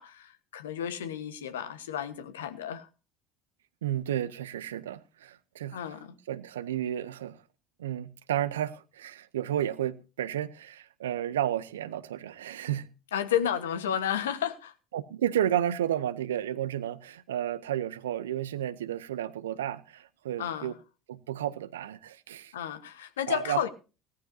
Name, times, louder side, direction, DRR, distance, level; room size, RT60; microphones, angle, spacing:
voice 1, 0.0-2.9 5.7-6.1 13.1-14.7 20.4-20.8 22.5-23.7, left 9 dB, 75° left, 1.2 m, -32 dB
voice 2, 3.8-5.8 6.3-7.4 7.8-12.9 14.9-20.7 21.1-22.5 23.3-23.7, right 11 dB, 75° right, 0.7 m, -32 dB
18.0 x 13.5 x 2.7 m
figure-of-eight pair, 65°, 0 cm